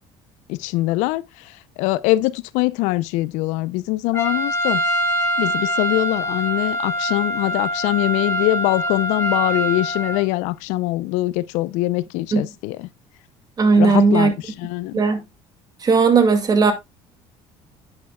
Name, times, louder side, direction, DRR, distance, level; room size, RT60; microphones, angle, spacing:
voice 1, 0.5-1.2 1.8-4.8 5.4-12.9 13.8-14.3 14.6-15.0, left 18 dB, 85° left, 0.6 m, -22 dB
Trumpet, 4.1-10.2, equal, 20° left, 3.0 m, -24 dB
voice 2, 13.6-14.3 14.9-15.2 15.8-16.7, right 4 dB, 35° right, 2.2 m, -16 dB
10.5 x 8.6 x 2.3 m
cardioid pair, 105°, 12 cm